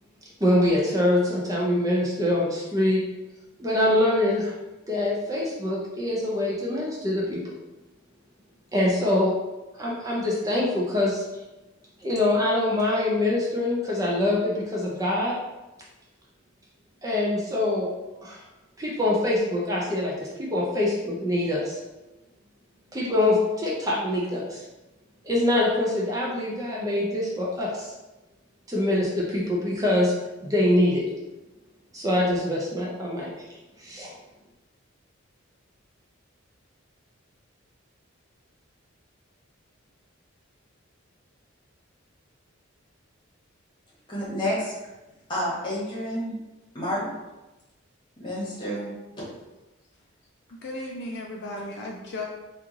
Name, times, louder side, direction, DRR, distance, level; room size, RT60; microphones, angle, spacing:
voice 1, 0.4-3.0 3.6-4.6 4.9-7.5 8.7-9.3 9.7-11.2 12.0-15.4 17.0-17.9 18.2-18.4 18.8-21.8 22.9-24.6 25.2-27.9 28.7-30.1 30.4-31.0 31.9-33.4 33.8-34.1, left 1 dB, 15° right, -4 dB, 0.4 m, -24 dB
voice 2, 44.1-44.7 45.3-46.3 46.7-47.1 48.2-49.2, equal, 25° left, -6 dB, 1.1 m, -29 dB
voice 3, 50.6-52.2, left 2 dB, 55° left, 0 dB, 0.4 m, -35 dB
3.1 x 2.4 x 3.6 m, 1.1 s
head